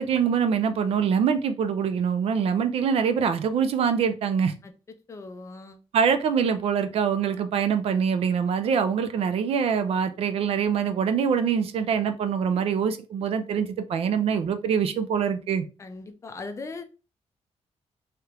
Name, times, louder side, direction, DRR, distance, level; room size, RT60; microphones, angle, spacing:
voice 1, 0.0-4.5 5.9-15.7, right 7 dB, 60° right, 0.4 m, -24 dB
voice 2, 5.1-5.8 15.8-16.8, left 3 dB, 25° left, 0.3 m, -39 dB
3.3 x 2.9 x 2.3 m
wide cardioid pair, 180°, 11 cm